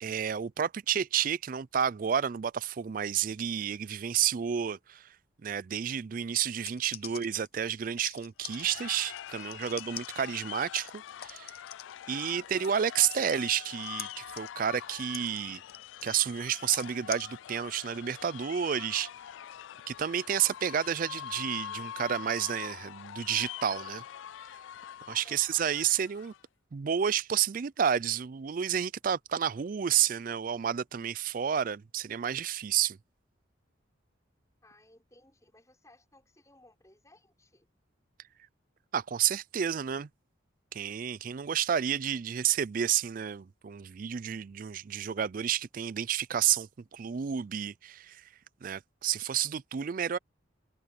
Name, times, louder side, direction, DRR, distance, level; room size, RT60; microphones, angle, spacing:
voice 1, 0.0-5.1 5.4-11.5 12.1-15.6 16.0-19.1 19.9-24.0 25.1-26.3 26.7-33.0 38.9-40.1 40.7-48.3 48.6-50.2, right 9 dB, 45° right, 0.4 m, -30 dB
sound 1, 6.5-12.8 13.0-17.2, left 13 dB, 50° left, 0.7 m, -44 dB
sound 2, 8.4-26.4, left 10 dB, 75° left, 0.3 m, -44 dB
voice 2, 9.4-9.8 25.2-25.7 34.6-37.7 42.3-42.4, left 2 dB, 15° left, 5.4 m, -61 dB
head